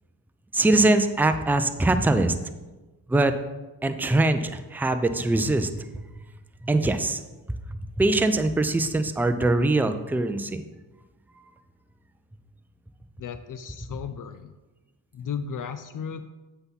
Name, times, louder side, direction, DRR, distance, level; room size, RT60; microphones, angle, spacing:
voice 1, 0.5-2.4 3.1-3.3 3.8-6.0 6.6-7.2 7.7-10.6, right 2 dB, 5° right, 9 dB, 0.5 m, -22 dB
voice 2, 13.2-14.5 15.1-16.2, left 7 dB, 50° left, 11 dB, 0.5 m, -35 dB
7.9 x 5.6 x 4.0 m, 1.2 s
supercardioid pair, 60°, 42 cm